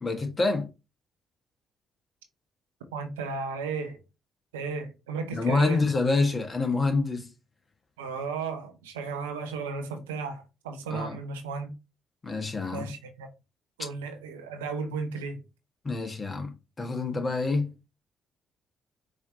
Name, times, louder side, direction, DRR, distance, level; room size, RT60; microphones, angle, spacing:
voice 1, 0.0-0.7 5.3-7.3 10.9-11.2 12.2-12.9 15.8-16.5 16.8-17.7, left 3 dB, 35° left, 1.3 m, -27 dB
voice 2, 2.9-4.0 4.5-5.8 8.0-11.7 12.7-13.3 13.8-15.4, right 4 dB, 85° right, 0.6 m, -34 dB
4.8 x 2.8 x 2.8 m
hypercardioid pair, 45°, 0 cm